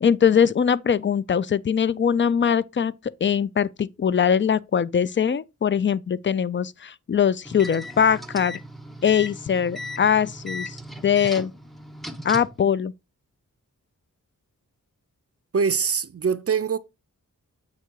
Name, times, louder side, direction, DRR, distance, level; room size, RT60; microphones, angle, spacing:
voice 1, 0.0-2.9 3.2-8.6 9.0-10.8 11.0-11.5 12.2-12.9, left 7 dB, 35° left, 0.4 m, -21 dB
sound 1, 7.4-12.6, left 1 dB, ahead, 0.7 m, -37 dB
voice 2, 15.5-16.8, right 6 dB, 45° right, 0.5 m, -23 dB
7.9 x 2.8 x 4.5 m
wide cardioid pair, 60°, 34 cm